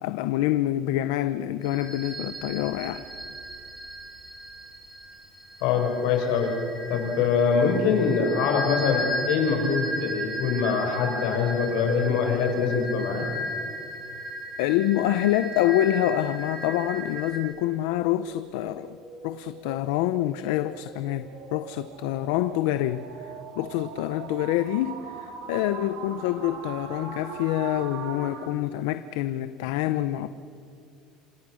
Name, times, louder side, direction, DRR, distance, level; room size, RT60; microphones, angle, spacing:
voice 1, 0.0-3.0 14.6-19.0 19.2-23.3 23.6-30.3, left 13 dB, 80° left, 0.8 m, -26 dB
sound 1, 1.6-17.4, equal, 5° right, 6.8 m, -35 dB
voice 2, 5.6-6.5 6.9-13.3, left 5 dB, 65° left, 5.7 m, -24 dB
sound 2, 15.5-28.5, right 6 dB, 85° right, 4.3 m, -42 dB
27.5 x 27.0 x 6.4 m
cardioid pair, 180°, 0 cm